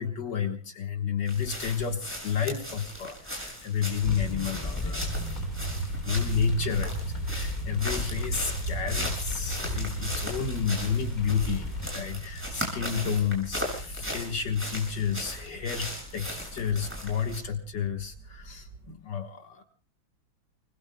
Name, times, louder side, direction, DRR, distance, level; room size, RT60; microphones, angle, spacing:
voice 1, 0.0-5.1 6.0-19.6, left 7 dB, 65° left, 4 dB, 2.1 m, -31 dB
sound 1, 1.3-17.4, equal, 5° right, 6.5 m, -38 dB
sound 2, 4.0-11.9, left 2 dB, 25° left, 2.8 m, -36 dB
sound 3, 5.0-18.9, right 2 dB, 65° right, 2.2 m, -38 dB
30.0 x 21.0 x 2.2 m, 0.40 s
omnidirectional pair, 2.0 m